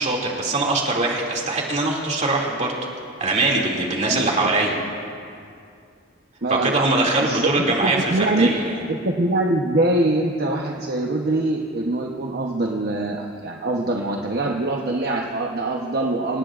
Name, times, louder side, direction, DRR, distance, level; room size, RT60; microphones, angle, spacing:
voice 1, 0.0-2.7 3.2-4.7 6.5-8.8, right 2 dB, 40° right, -2 dB, 2.6 m, -22 dB
voice 2, 4.1-4.5 6.4-6.7 7.0-8.5 8.9-16.4, right 2 dB, 55° right, 0 dB, 1.0 m, -23 dB
27.0 x 18.5 x 2.5 m, 2.4 s
head